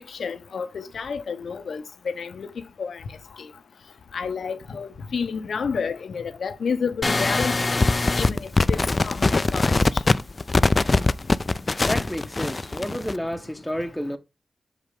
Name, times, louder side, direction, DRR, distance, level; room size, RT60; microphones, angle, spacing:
voice 1, 0.2-2.5 2.8-3.0 4.1-7.5 8.1-9.7, left 5 dB, 80° left, 0.7 m, -30 dB
sound 1, 7.0-13.2, left 3 dB, 40° left, 0.3 m, -22 dB
voice 2, 11.4-14.2, equal, 5° left, 0.9 m, -31 dB
6.5 x 5.0 x 3.5 m
cardioid pair, 60°, 0 cm